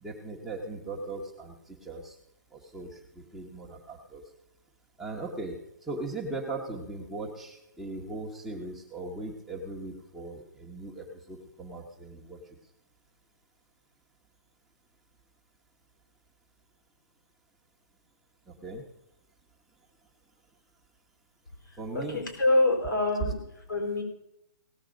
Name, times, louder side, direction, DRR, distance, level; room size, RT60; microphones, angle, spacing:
voice 1, 0.0-2.2 2.5-4.2 5.0-12.6 18.5-18.8 21.8-22.2, right 2 dB, 5° right, -5 dB, 1.1 m, -39 dB
voice 2, 21.9-23.4 23.7-24.0, left 2 dB, 90° left, 2 dB, 4.5 m, -25 dB
18.0 x 7.1 x 5.1 m, 0.83 s
hypercardioid pair, 155°, 10 cm